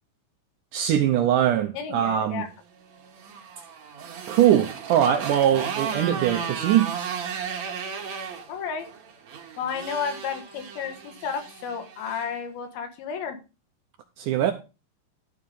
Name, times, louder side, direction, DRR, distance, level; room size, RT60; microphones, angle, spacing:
voice 1, 0.7-2.4 4.3-6.9 14.2-14.5, right 11 dB, 80° right, 1.9 m, -21 dB
voice 2, 1.7-2.5 8.5-8.9 9.6-13.4, left 6 dB, 75° left, 3.3 m, -32 dB
Motorcycle, 2.9-12.3, right 6 dB, 55° right, 2.4 m, -35 dB
12.5 x 4.8 x 5.3 m
omnidirectional pair, 4.4 m